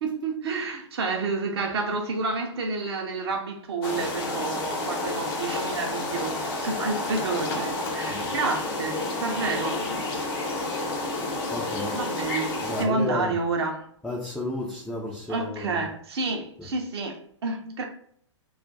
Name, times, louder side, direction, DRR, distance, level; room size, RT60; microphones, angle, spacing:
voice 1, 0.0-9.8 11.9-13.9 15.3-17.8, right 3 dB, 55° right, 0.5 m, -29 dB
sound 1, 3.8-12.8, left 2 dB, 45° left, 0.8 m, -30 dB
voice 2, 11.2-12.0 12.6-13.3 14.0-15.8, left 2 dB, 5° left, 0.4 m, -33 dB
2.4 x 2.2 x 3.8 m
figure-of-eight pair, 115°, 16 cm